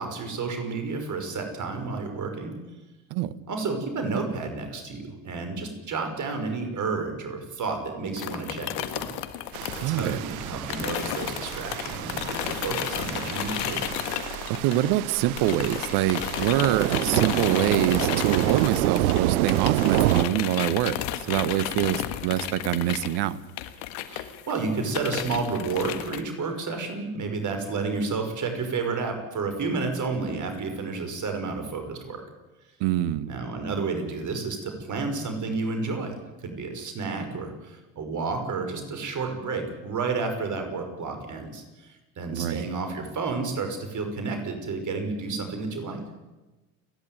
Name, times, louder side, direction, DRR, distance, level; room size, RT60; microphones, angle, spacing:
voice 1, 0.0-2.6 3.5-9.1 9.7-13.8 24.1-32.2 33.3-46.0, right 4 dB, 45° right, 6 dB, 5.9 m, -31 dB
sound 1, 8.2-15.1 15.4-26.2, left 13 dB, 70° left, 1.8 m, -33 dB
sound 2, 9.5-20.2, right 15 dB, 80° right, 0.7 m, -28 dB
voice 2, 9.8-10.2 14.5-23.4 32.8-33.4 42.3-42.7, right 13 dB, 65° right, 17 dB, 1.3 m, -25 dB
30.0 x 11.5 x 9.4 m, 1.1 s
hypercardioid pair, 70°, 43 cm